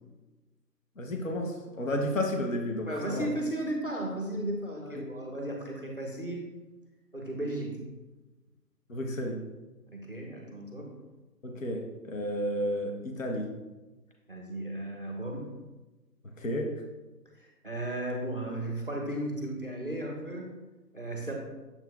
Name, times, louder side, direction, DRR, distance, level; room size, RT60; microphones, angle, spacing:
voice 1, 1.0-3.3 4.8-5.0 8.9-9.5 11.4-13.6 16.4-16.8, left 1 dB, 50° left, 3 dB, 0.8 m, -32 dB
voice 2, 2.9-6.4 7.1-7.8 9.9-10.9 14.3-15.5 17.3-20.5 20.9-21.3, right 1 dB, 35° right, 0 dB, 0.7 m, -35 dB
7.2 x 6.3 x 2.3 m, 1.2 s
hypercardioid pair, 180°, 50 cm